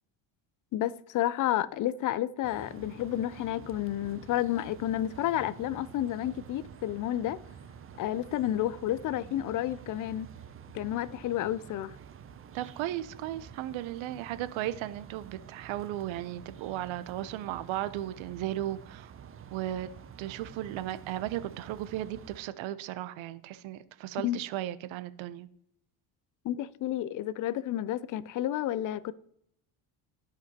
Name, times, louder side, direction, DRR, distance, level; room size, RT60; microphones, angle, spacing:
voice 1, 0.7-7.4 8.0-10.3 10.7-12.0 24.2-24.4 26.4-29.1, left 13 dB, 40° left, 0.4 m, -31 dB
sound 1, 2.4-22.4, right 8 dB, 30° right, 0.5 m, -49 dB
voice 2, 12.5-19.1 19.5-19.9 20.2-25.5, right 13 dB, 65° right, 0.7 m, -35 dB
14.0 x 5.1 x 2.8 m
cardioid pair, 95°, 50 cm